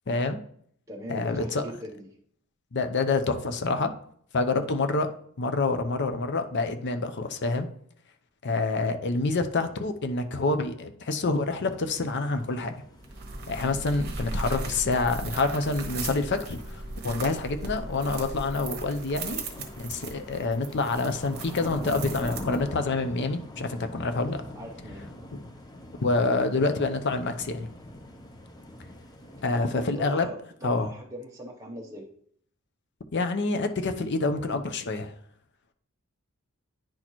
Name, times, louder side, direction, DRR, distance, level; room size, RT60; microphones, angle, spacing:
voice 1, 0.1-0.4 1.1-1.6 2.7-3.9 4.3-5.1 5.4-7.7 8.4-12.7 13.5-24.4 26.0-27.7 29.4-30.3 30.6-30.9 33.1-35.1, left 3 dB, 55° left, 7 dB, 0.6 m, -27 dB
voice 2, 0.9-2.1 17.2-17.4 24.5-25.1 29.6-32.1, equal, 15° right, -2 dB, 0.7 m, -40 dB
sound 1, 11.3-29.6, left 1 dB, 20° left, 0.7 m, -44 dB
sound 2, 13.0-22.9, right 3 dB, 50° right, 1.1 m, -37 dB
10.0 x 4.2 x 3.0 m, 0.64 s
head